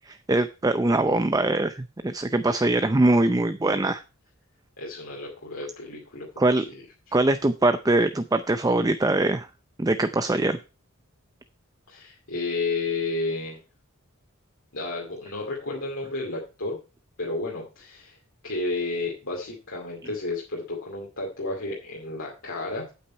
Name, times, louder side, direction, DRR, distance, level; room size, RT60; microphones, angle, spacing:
voice 1, 0.1-4.0 6.4-6.6 7.1-9.5 9.8-10.6, right 2 dB, 15° right, 10 dB, 0.5 m, -22 dB
voice 2, 4.8-6.8 7.1-7.2 11.9-13.6 14.7-16.8 17.2-22.9, left 3 dB, 65° left, -2 dB, 2.4 m, -32 dB
8.6 x 8.5 x 4.4 m, 0.32 s
head